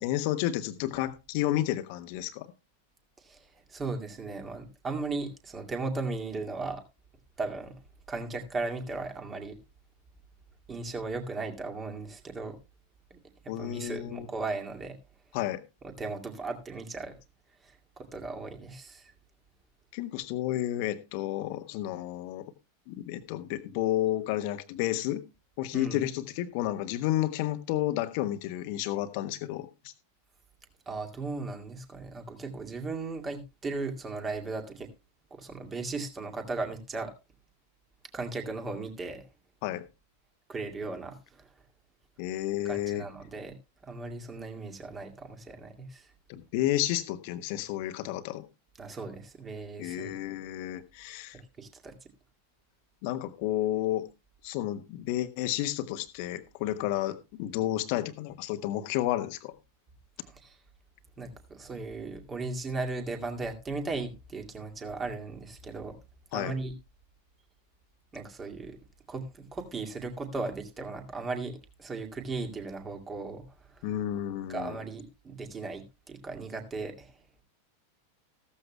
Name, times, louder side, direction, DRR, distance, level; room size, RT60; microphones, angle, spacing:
voice 1, 0.0-2.5 13.5-14.3 15.3-15.6 19.9-22.4 22.9-25.2 25.6-29.9 39.6-39.8 42.2-43.1 46.3-48.4 49.8-51.4 53.0-54.1 54.4-59.5 66.3-66.5 73.8-74.7, left 14 dB, 45° left, 1.3 m, -31 dB
voice 2, 3.2-6.8 7.4-7.7 8.1-9.6 10.7-12.6 13.1-13.2 13.6-15.0 15.8-17.1 17.6-19.1 25.7-26.0 30.9-34.9 35.3-37.1 38.1-39.2 40.5-41.4 42.6-43.5 43.8-46.1 48.8-50.2 51.3-51.9 60.2-60.6 61.2-66.0 66.3-66.7 68.1-68.8 69.1-73.4 73.7-73.9 74.5-77.1, right 3 dB, 20° right, 2.2 m, -37 dB
15.0 x 14.0 x 2.2 m
figure-of-eight pair, 90°, 0 cm